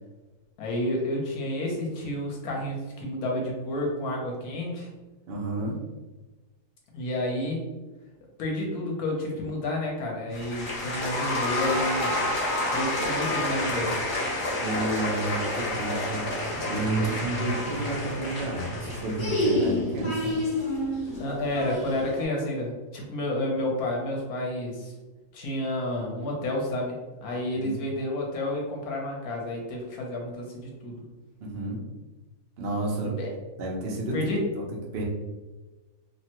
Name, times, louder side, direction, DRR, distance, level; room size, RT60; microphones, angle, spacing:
voice 1, 0.6-4.9 6.9-7.6 8.4-12.1 12.7-14.0 21.2-24.9 25.3-31.0 33.0-33.3 34.1-34.4, left 1 dB, 70° left, -1 dB, 1.2 m, -30 dB
voice 2, 5.3-5.8 14.6-20.4 27.6-27.8 31.4-31.9 32.6-33.2 33.6-34.1 34.6-34.7 34.9-35.0, right 2 dB, 85° right, -2 dB, 0.5 m, -31 dB
sound 1, 10.3-22.2, left 1 dB, 50° left, 0.7 m, -29 dB
3.0 x 2.1 x 2.8 m, 1.2 s
omnidirectional pair, 1.8 m